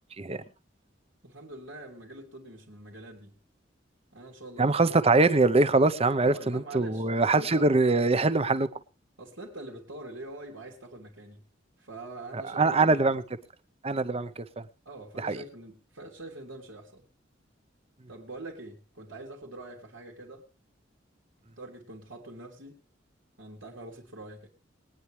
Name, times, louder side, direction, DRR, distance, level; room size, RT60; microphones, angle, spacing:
voice 1, 1.2-3.3 4.1-5.0 6.2-7.7 9.2-11.4 11.8-13.2 14.8-17.0 18.1-20.5 21.6-22.8 23.4-24.5, right 2 dB, 80° right, 3.2 m, -44 dB
voice 2, 4.6-8.7 12.3-13.2 13.8-14.7 15.2-15.4, right 3 dB, 30° right, 0.8 m, -23 dB
22.0 x 9.7 x 3.3 m
head